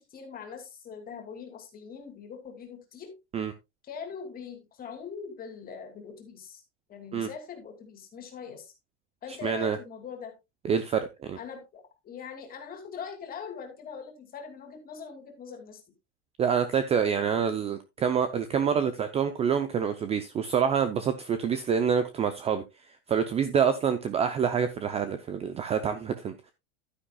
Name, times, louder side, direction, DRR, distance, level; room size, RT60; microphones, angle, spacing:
voice 1, 0.0-3.1 3.8-6.6 6.9-8.7 9.2-10.3 11.4-15.8, left 6 dB, 25° left, 2.7 m, -42 dB
voice 2, 9.3-9.8 10.6-11.4 16.4-26.5, right 7 dB, 20° right, 0.6 m, -27 dB
11.5 x 9.6 x 2.3 m
supercardioid pair, 150°, 35 cm